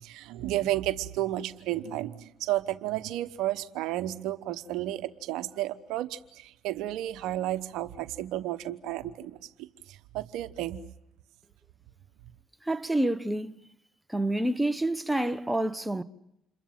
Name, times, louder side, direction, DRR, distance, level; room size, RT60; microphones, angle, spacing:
voice 1, 0.0-10.8, right 14 dB, 80° right, 1.0 m, -32 dB
voice 2, 12.6-13.6 14.1-16.0, right 1 dB, 5° right, 1.2 m, -28 dB
28.0 x 22.5 x 7.3 m
supercardioid pair, 65°, 0 cm